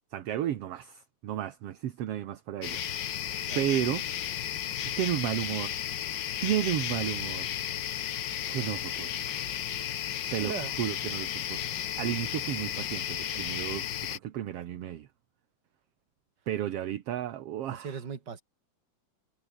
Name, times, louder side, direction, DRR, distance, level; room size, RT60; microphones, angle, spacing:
voice 1, 0.1-2.8 3.5-4.1 5.0-5.8 6.4-7.5 8.5-9.3 10.3-15.1 16.5-18.0, right 11 dB, 60° right, 1.9 m, -33 dB
sound 1, 2.6-14.2, left 10 dB, 80° left, 0.9 m, -34 dB
voice 2, 9.9-10.7 17.7-18.4, right 6 dB, 35° right, 2.8 m, -39 dB
omnidirectional pair, 3.5 m